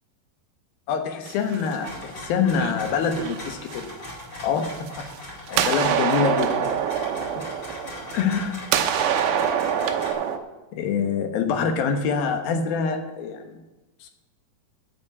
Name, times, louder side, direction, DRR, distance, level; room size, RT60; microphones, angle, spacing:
voice 1, 0.9-3.9 4.4-5.1 5.5-6.7 7.4-7.5 8.1-8.6 10.7-13.6 14.0-14.1, left 6 dB, 80° left, 5 dB, 3.0 m, -25 dB
sound 1, 1.3-2.1 2.6-4.1 4.8-5.2 5.5-8.4 8.7-10.4, right 8 dB, 75° right, 2.2 m, -25 dB
sound 2, 1.8-10.1, left 1 dB, 30° left, 5.4 m, -39 dB
9.5 x 8.6 x 8.5 m, 1.1 s
omnidirectional pair, 4.2 m